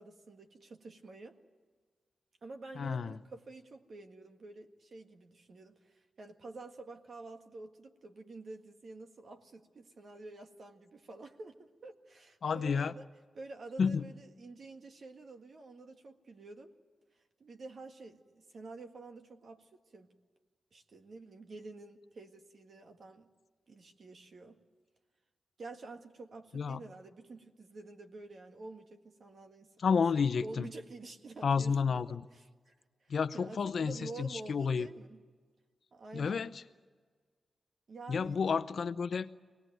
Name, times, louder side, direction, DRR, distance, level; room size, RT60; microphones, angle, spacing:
voice 1, 0.0-1.4 2.4-13.1 13.3-16.7 17.4-20.1 20.7-23.3 23.7-24.6 25.6-29.7 30.4-32.7 33.0-35.2 35.9-36.5 37.9-38.4, right 3 dB, 50° right, 4 dB, 1.8 m, -49 dB
voice 2, 2.8-3.2 12.4-12.9 13.8-14.0 26.5-26.8 29.8-30.7 31.4-32.2 33.1-34.9 36.1-36.6 38.1-39.3, left 5 dB, 55° left, 12 dB, 0.7 m, -31 dB
25.0 x 19.0 x 9.2 m, 1.5 s
wide cardioid pair, 160°, 0 cm